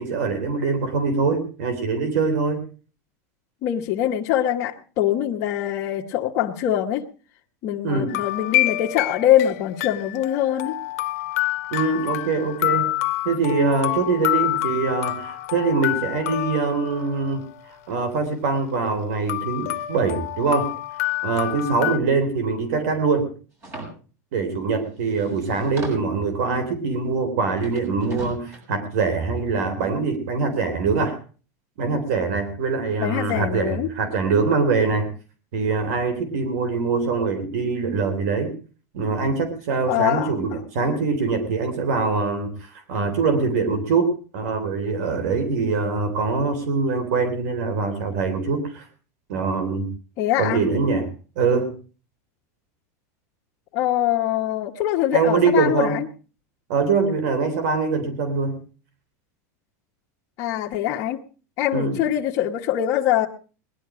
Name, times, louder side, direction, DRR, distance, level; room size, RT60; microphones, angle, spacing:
voice 1, 0.0-2.6 7.8-8.1 11.7-12.9 13.3-17.5 17.9-20.7 21.2-23.3 24.3-31.2 31.8-35.1 35.5-38.5 38.9-48.9 49.3-49.9 50.4-51.1 51.4-51.7 55.1-56.0 56.7-58.6 61.7-62.0, right 4 dB, 70° right, 8 dB, 3.6 m, -23 dB
voice 2, 3.6-7.0 7.6-10.8 33.0-33.9 39.9-40.3 50.2-50.6 53.7-56.1 60.4-61.2 61.6-63.3, left 11 dB, 40° left, -1 dB, 1.2 m, -23 dB
sound 1, 8.1-17.5 19.3-22.0, left 17 dB, 65° left, 0.9 m, -27 dB
sound 2, 23.6-23.9 24.8-24.9 25.1-26.2 27.6-28.6, right 2 dB, 30° right, 7.0 m, -36 dB
20.0 x 11.5 x 4.9 m, 0.38 s
supercardioid pair, 150°, 9 cm